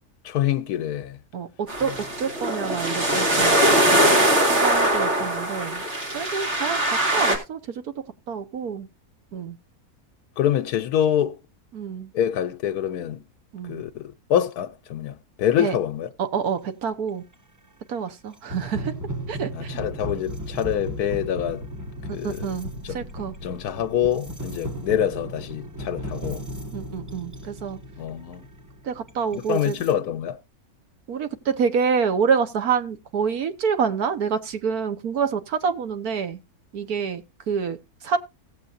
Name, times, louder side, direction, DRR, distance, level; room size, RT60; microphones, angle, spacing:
voice 1, 0.2-1.2 10.4-11.4 12.1-13.2 13.7-16.1 19.5-21.6 22.1-22.5 22.8-22.9 23.4-26.4 28.0-28.4 29.3-30.4, left 10 dB, 85° left, 1.2 m, -25 dB
voice 2, 1.3-3.7 4.5-5.8 6.1-7.8 8.3-8.9 9.3-9.6 11.7-12.1 13.5-13.8 15.6-15.8 16.2-17.2 17.9-18.9 19.3-19.8 22.1-23.3 26.7-27.8 28.8-29.8 31.1-36.4 36.7-38.2, right 6 dB, 80° right, 1.6 m, -27 dB
sound 1, 1.7-7.4, right 1 dB, 50° right, 2.9 m, -21 dB
sound 2, 17.3-17.4 18.3-29.9, equal, 10° right, 1.5 m, -35 dB
17.0 x 7.8 x 2.6 m
omnidirectional pair, 1.6 m